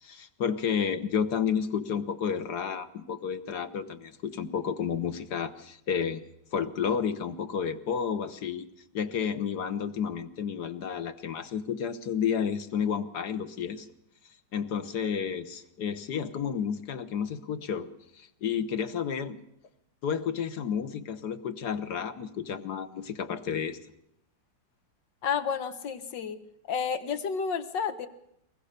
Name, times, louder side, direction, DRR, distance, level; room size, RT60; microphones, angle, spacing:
voice 1, 0.0-6.2 6.5-8.7 8.9-13.9 14.5-17.9 18.2-19.4 20.0-23.8, left 7 dB, 65° left, 10 dB, 1.6 m, -31 dB
voice 2, 25.2-26.4 26.7-28.1, left 6 dB, 80° left, 10 dB, 2.0 m, -30 dB
23.5 x 20.0 x 6.7 m, 0.79 s
omnidirectional pair, 1.9 m